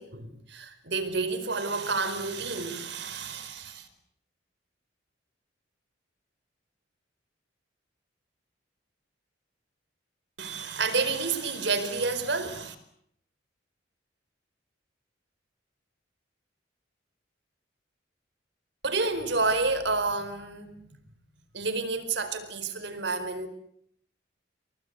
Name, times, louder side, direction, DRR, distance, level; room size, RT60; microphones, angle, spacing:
voice 1, 0.0-3.9 10.4-12.7 18.8-20.9 21.5-23.5, right 3 dB, 60° right, 4.6 m, -30 dB
29.5 x 23.0 x 8.2 m
head